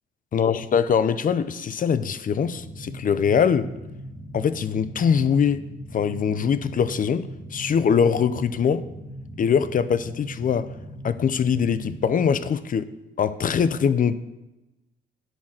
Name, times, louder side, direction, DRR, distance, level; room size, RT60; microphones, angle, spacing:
voice 1, 0.3-3.7 4.3-5.6 5.9-8.9 9.4-10.7 11.0-12.8 13.2-14.1, left 7 dB, 45° left, 14 dB, 0.6 m, -22 dB
sound 1, 2.4-12.2, equal, 25° right, 1.7 m, -39 dB
10.5 x 4.1 x 7.4 m, 1.0 s
cardioid pair, 90°, 20 cm